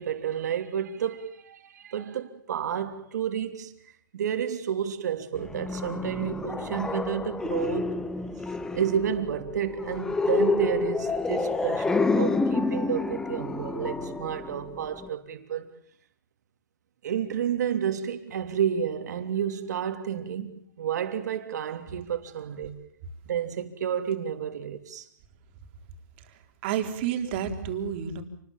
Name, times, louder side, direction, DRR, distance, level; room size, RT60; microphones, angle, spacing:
voice 1, 0.0-3.7 4.1-8.0 8.7-15.7 17.0-22.7 23.3-25.1, right 8 dB, 65° right, 3.1 m, -30 dB
sound 1, 5.4-15.1, left 3 dB, 5° left, 1.0 m, -29 dB
voice 2, 26.3-28.2, right 8 dB, 35° right, 3.8 m, -30 dB
28.5 x 20.5 x 7.3 m
hypercardioid pair, 160°, 10 cm